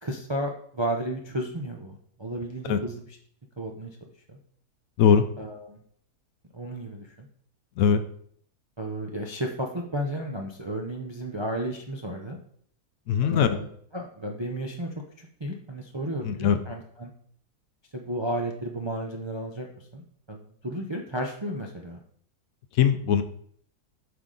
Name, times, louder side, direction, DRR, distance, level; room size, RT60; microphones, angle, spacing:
voice 1, 0.0-3.2 3.6-3.9 4.3-4.4 5.4-5.8 6.5-7.3 8.8-12.4 13.2-13.7 13.9-17.1 17.9-19.7 19.9-22.0, right 1 dB, 35° right, 1 dB, 0.4 m, -33 dB
voice 2, 13.1-13.5 16.2-16.6 22.8-23.2, left 7 dB, 70° left, 9 dB, 0.9 m, -20 dB
8.0 x 4.8 x 3.9 m, 0.62 s
omnidirectional pair, 1.7 m